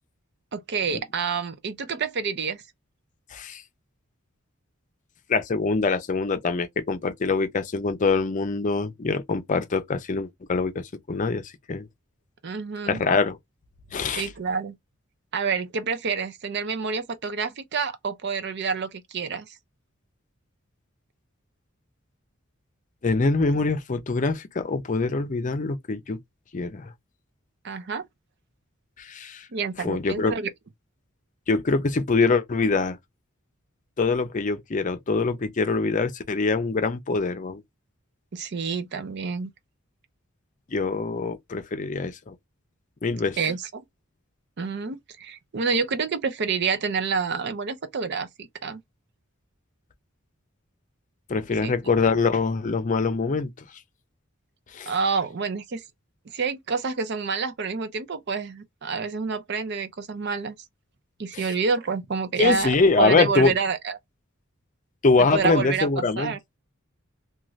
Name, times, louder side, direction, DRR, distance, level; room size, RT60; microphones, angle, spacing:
voice 1, 0.5-2.6 12.4-13.0 14.1-14.8 15.3-19.6 23.5-23.7 27.6-28.1 29.5-30.5 38.3-39.5 43.4-43.8 44.6-48.8 51.6-51.9 54.9-55.8 56.3-60.6 61.2-64.0 65.2-66.4, right 5 dB, 55° right, 0.5 m, -28 dB
voice 2, 3.3-3.6 5.3-11.9 12.9-13.4 13.9-14.3 23.0-26.2 26.5-26.9 29.0-29.5 29.8-30.3 31.5-33.0 34.0-37.6 40.7-42.3 43.0-43.4 51.3-53.5 54.7-54.9 61.3-61.5 62.4-63.5 65.0-66.3, left 3 dB, 40° left, 0.5 m, -24 dB
2.6 x 2.4 x 3.1 m
head